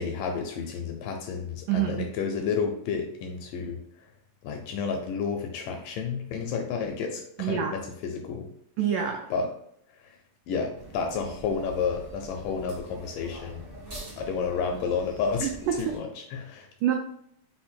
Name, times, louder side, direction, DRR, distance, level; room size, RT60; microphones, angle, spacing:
voice 1, 0.0-3.8 4.4-8.5 9.3-9.5 10.5-13.6 14.2-15.5 15.8-16.7, left 5 dB, 80° left, 3 dB, 2.0 m, -31 dB
voice 2, 1.7-2.1 7.4-7.7 8.8-9.3 15.4-16.0 16.8-16.9, right 9 dB, 85° right, 2 dB, 1.8 m, -27 dB
sound 1, 10.7-16.0, right 1 dB, 60° right, 0.8 m, -44 dB
5.5 x 2.1 x 4.3 m, 0.70 s
omnidirectional pair, 4.1 m